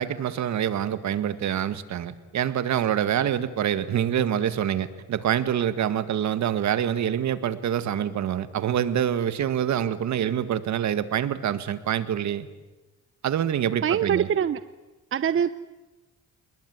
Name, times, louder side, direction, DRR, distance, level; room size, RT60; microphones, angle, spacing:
voice 1, 0.0-12.5 13.2-14.3, right 10 dB, 65° right, 13 dB, 1.8 m, -26 dB
voice 2, 13.8-14.6 15.1-15.5, right 8 dB, 45° right, 15 dB, 0.8 m, -23 dB
28.5 x 20.5 x 9.5 m, 1.1 s
cardioid pair, 90°, 30 cm